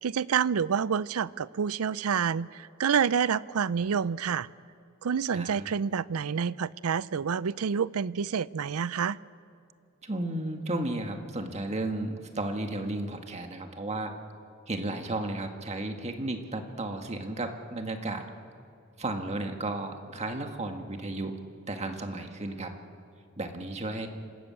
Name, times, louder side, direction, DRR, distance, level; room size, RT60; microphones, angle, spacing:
voice 1, 0.0-4.5 5.0-9.2, right 7 dB, 75° right, 0.5 m, -28 dB
voice 2, 5.3-5.6 10.0-14.1 14.7-18.2 19.0-21.4 21.7-22.7 23.4-24.1, right 2 dB, 30° right, 1.6 m, -33 dB
27.0 x 13.5 x 8.4 m
head